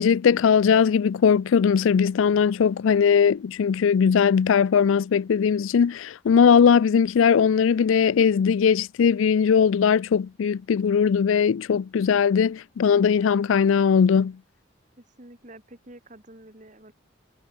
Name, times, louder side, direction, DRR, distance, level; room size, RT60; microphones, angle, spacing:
voice 1, 0.0-14.4, left 7 dB, 75° left, 0.4 m, -19 dB
voice 2, 15.0-16.9, right 1 dB, 35° right, 2.8 m, -48 dB
head